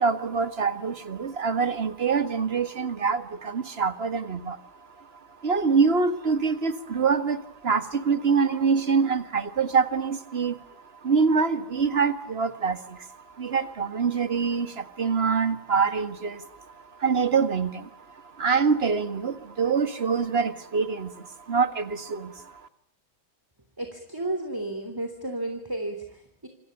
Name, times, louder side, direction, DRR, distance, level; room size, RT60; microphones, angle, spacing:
voice 1, 0.0-4.6 5.0-5.1 5.4-22.7, right 5 dB, 30° right, 1.9 m, -25 dB
voice 2, 23.8-26.5, right 1 dB, 10° right, 3.2 m, -32 dB
28.0 x 27.0 x 6.8 m
omnidirectional pair, 2.3 m